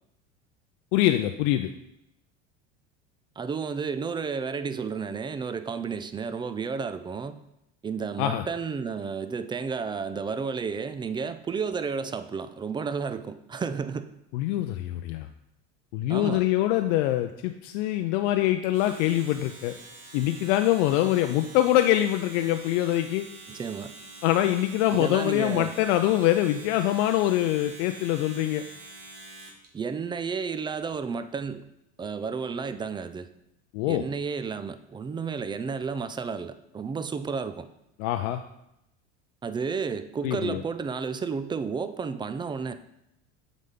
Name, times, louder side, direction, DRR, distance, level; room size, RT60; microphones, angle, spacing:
voice 1, 0.9-1.7 8.2-8.4 14.3-15.3 15.9-19.7 20.1-23.3 24.2-28.6 33.7-34.0 38.0-38.4 40.2-40.6, left 13 dB, 70° left, 7 dB, 0.5 m, -24 dB
voice 2, 3.4-7.4 7.8-14.1 16.1-16.5 23.5-23.9 24.9-25.8 29.7-31.7 32.0-33.3 33.9-37.7 39.4-42.7, right 5 dB, 15° right, 11 dB, 0.3 m, -32 dB
Domestic sounds home sounds, 18.6-29.7, right 3 dB, 85° right, 1.5 m, -46 dB
7.6 x 4.1 x 3.7 m, 0.82 s
hypercardioid pair, 90°, 37 cm